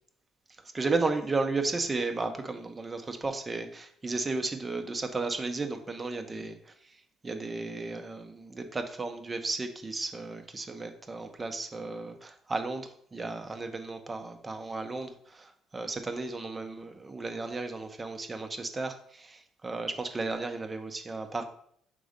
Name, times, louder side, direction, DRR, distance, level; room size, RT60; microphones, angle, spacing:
voice 1, 0.7-6.7 7.2-21.4, right 3 dB, 25° right, 7 dB, 0.8 m, -34 dB
5.2 x 3.8 x 5.1 m, 0.65 s
cardioid pair, 95°, 0 cm